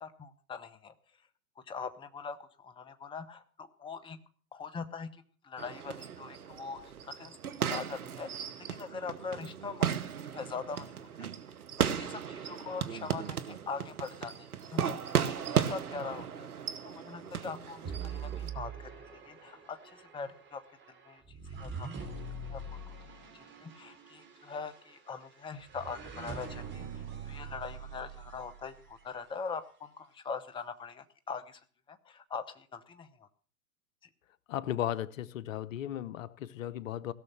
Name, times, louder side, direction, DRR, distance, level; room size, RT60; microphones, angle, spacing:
voice 1, 0.0-0.9 1.7-4.2 4.5-7.4 7.7-10.0 10.3-10.9 11.2-11.3 11.8-15.2 15.5-16.5 16.8-20.6 21.1-22.1 22.5-22.8 23.6-26.9 27.2-31.6 31.9-33.3, left 5 dB, 10° left, 0.8 m, -42 dB
sound 1, 5.6-18.5, right 8 dB, 80° right, 1.1 m, -35 dB
sound 2, 17.8-29.1, right 5 dB, 25° right, 3.5 m, -44 dB
voice 2, 34.5-37.1, left 11 dB, 60° left, 0.9 m, -35 dB
17.0 x 6.6 x 7.3 m
hypercardioid pair, 110°, 44 cm